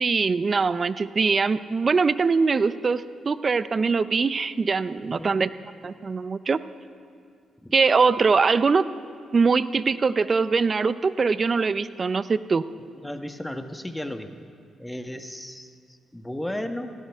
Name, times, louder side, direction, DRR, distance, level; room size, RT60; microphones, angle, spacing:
voice 1, 0.0-5.5 5.8-6.6 7.7-8.8 9.3-12.6, right 4 dB, 45° right, 15 dB, 0.6 m, -22 dB
voice 2, 5.0-5.3 7.6-7.7 12.8-14.4 14.8-16.9, left 1 dB, 10° left, 7 dB, 1.2 m, -35 dB
17.5 x 16.5 x 3.6 m, 2.2 s
supercardioid pair, 55°, 0 cm